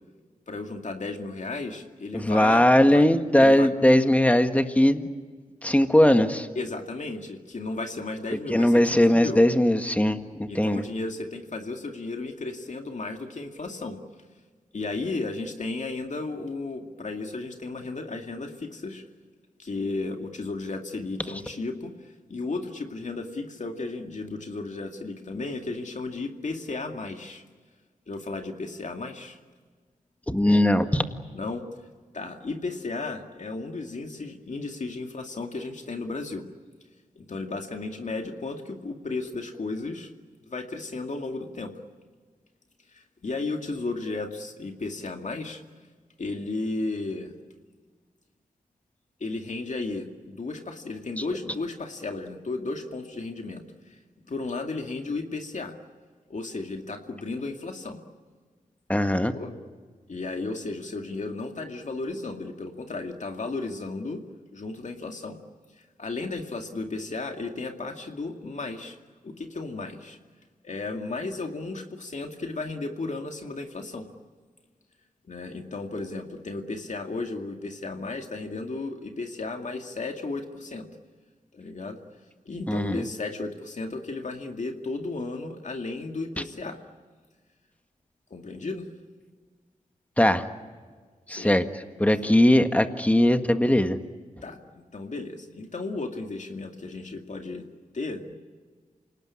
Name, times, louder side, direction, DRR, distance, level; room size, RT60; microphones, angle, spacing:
voice 1, 0.5-2.6 2.9-3.0 3.4-3.7 6.6-8.8 9.1-9.4 10.5-14.0 14.7-19.0 19.6-27.4 28.1-29.4 31.3-31.6 32.1-36.5 37.2-40.1 40.5-41.7 42.9-45.6 46.2-47.4 49.2-54.0 54.3-55.8 56.3-58.0 59.3-59.5 60.1-64.2 64.5-65.4 66.0-69.0 69.2-70.2 70.6-74.1 75.3-80.9 81.5-82.0 82.5-86.8 88.3-88.9 91.3-91.6 94.4-97.7 97.9-98.3, left 3 dB, 60° left, 4 dB, 2.3 m, -34 dB
voice 2, 2.1-5.1 5.6-6.5 8.5-10.8 30.3-31.0 58.9-59.3 82.7-83.0 90.2-90.5 91.3-91.6 92.0-94.0, left 1 dB, 10° left, 7 dB, 1.7 m, -20 dB
28.0 x 19.0 x 9.8 m, 1.5 s
wide cardioid pair, 75°, 14 cm